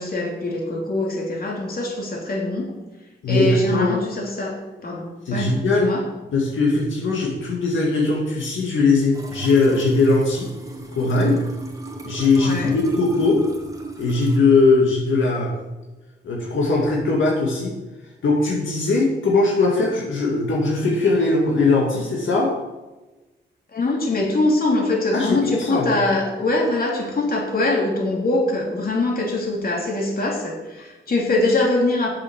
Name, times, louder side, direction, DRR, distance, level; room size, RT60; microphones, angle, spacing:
voice 1, 0.0-2.7 3.3-4.6 4.8-6.0 12.4-12.7 23.7-32.1, left 2 dB, 50° left, -1 dB, 3.1 m, -23 dB
voice 2, 3.2-4.0 5.3-5.9 6.3-10.5 10.9-11.4 12.0-13.5 14.0-15.5 16.2-17.8 18.2-22.5 25.1-25.9, left 3 dB, 80° left, -2 dB, 2.2 m, -20 dB
sound 1, 9.1-14.4, right 2 dB, 15° right, 2.0 m, -37 dB
8.1 x 7.6 x 7.2 m, 1.1 s
cardioid pair, 85°, 20 cm